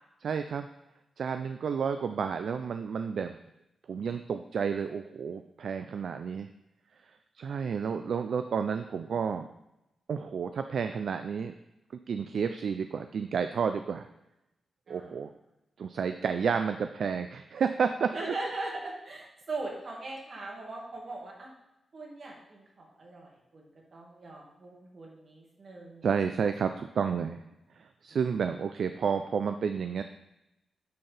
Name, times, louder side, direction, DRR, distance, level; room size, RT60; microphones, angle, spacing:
voice 1, 0.2-0.7 1.2-3.4 3.9-6.5 7.3-9.5 10.1-11.5 12.1-14.1 14.9-15.3 15.8-18.3 26.0-27.4 27.8-30.0, right 6 dB, 70° right, 8 dB, 0.3 m, -31 dB
voice 2, 18.1-21.5 21.9-22.3 22.8-23.3 23.5-23.6 23.9-26.0, right 2 dB, 55° right, -2 dB, 2.0 m, -39 dB
9.1 x 4.4 x 3.4 m, 0.90 s
cardioid pair, 85°, 0 cm